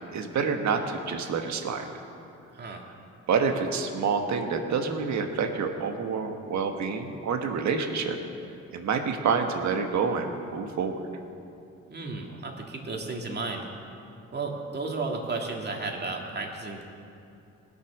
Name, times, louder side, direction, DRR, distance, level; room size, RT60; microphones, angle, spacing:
voice 1, 0.1-1.9 2.7-2.8 3.3-8.2 8.7-11.0, right 5 dB, 65° right, 5 dB, 1.5 m, -28 dB
voice 2, 11.9-13.7 14.3-16.8, right 3 dB, 35° right, 1 dB, 2.2 m, -33 dB
19.5 x 6.9 x 6.2 m, 2.7 s
cardioid pair, 90°, 30 cm